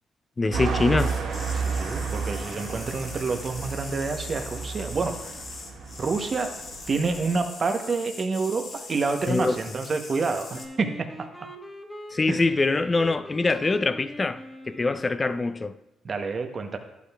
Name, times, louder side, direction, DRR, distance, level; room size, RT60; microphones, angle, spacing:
voice 1, 0.4-1.2 9.3-9.5 12.1-14.4 14.7-15.8, left 3 dB, 30° left, 0.5 m, -24 dB
sound 1, 0.5-7.4, right 5 dB, 75° right, 1.3 m, -32 dB
sound 2, 1.0-10.7, left 3 dB, 55° left, 2.6 m, -41 dB
voice 2, 1.5-5.4 6.0-6.6 6.9-11.1 12.3-12.4 16.0-16.8, right 4 dB, 50° right, 0.9 m, -28 dB
Wind instrument woodwind instrument, 10.5-15.6, equal, ahead, 1.4 m, -42 dB
11.5 x 8.2 x 2.3 m
supercardioid pair, 55°, 0 cm